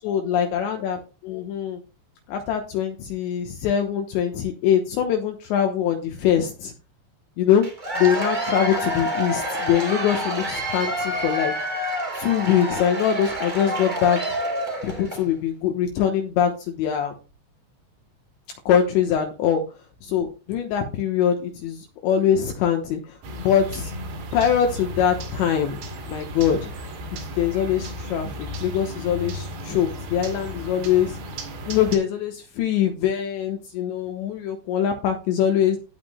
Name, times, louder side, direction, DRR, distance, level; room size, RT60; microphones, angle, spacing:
voice 1, 0.0-1.8 2.3-6.7 7.4-7.7 8.0-11.5 12.1-14.4 14.8-17.1 18.7-19.6 20.0-23.9 24.3-25.8 26.1-26.9 27.4-31.2 31.7-35.8, left 9 dB, 75° left, 4 dB, 3.0 m, -23 dB
Cheering / Applause / Crowd, 7.6-15.3, equal, 40° right, 0.6 m, -28 dB
sound 1, 23.2-32.0, equal, 60° right, 4.1 m, -35 dB
17.5 x 5.9 x 2.2 m, 0.33 s
omnidirectional pair, 5.7 m